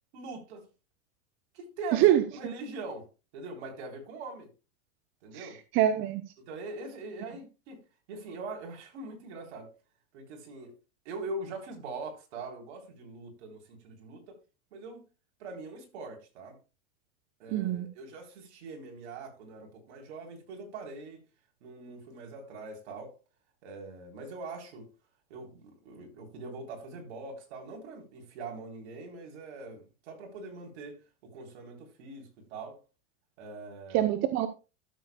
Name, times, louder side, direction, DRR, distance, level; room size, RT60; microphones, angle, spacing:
voice 1, 0.1-0.7 1.5-3.1 3.3-4.5 5.2-5.6 6.4-7.8 8.1-9.7 10.1-10.7 11.1-14.4 14.7-15.0 15.4-16.6 17.4-21.2 21.6-23.1 23.6-24.9 25.3-32.8 33.4-34.1, right 3 dB, 65° right, 3.6 m, -42 dB
voice 2, 1.9-2.2 5.3-6.3 17.5-17.9 33.9-34.5, right 12 dB, 35° right, 0.7 m, -25 dB
13.0 x 7.2 x 2.2 m
supercardioid pair, 135°, 36 cm